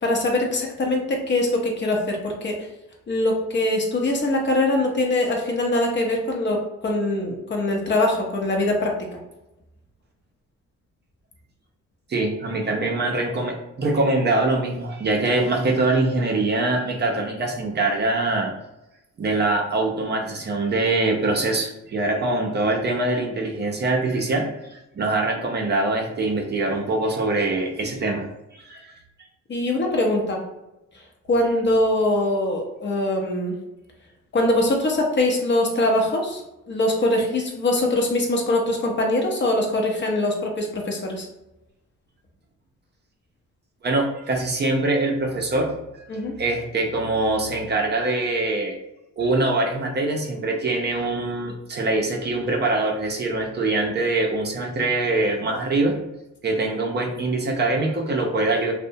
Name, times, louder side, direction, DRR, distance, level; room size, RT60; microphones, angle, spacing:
voice 1, 0.0-2.6 3.1-9.2 29.5-30.4 31.3-33.6 34.3-36.4 36.7-41.3 46.1-46.4, left 1 dB, 40° left, 1 dB, 0.6 m, -22 dB
voice 2, 12.1-18.5 19.2-29.0 43.8-46.0 46.4-48.8 49.2-56.0 56.4-58.7, right 2 dB, 35° right, 1 dB, 0.5 m, -23 dB
2.6 x 2.1 x 2.6 m, 0.93 s
cardioid pair, 90°, 30 cm